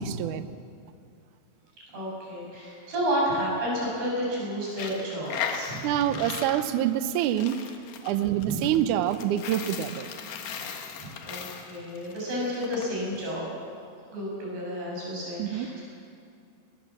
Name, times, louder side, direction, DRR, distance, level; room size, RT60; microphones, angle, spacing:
voice 1, 0.1-0.4 5.8-7.6 8.0-10.1 15.4-15.7, right 11 dB, 90° right, 11 dB, 1.7 m, -26 dB
voice 2, 1.9-5.8 11.0-13.5 14.1-15.8, equal, 70° right, -4 dB, 9.7 m, -31 dB
Coin (dropping), 4.7-12.9, left 7 dB, 60° left, 2.8 m, -37 dB
22.0 x 19.5 x 7.6 m, 2.4 s
omnidirectional pair, 4.8 m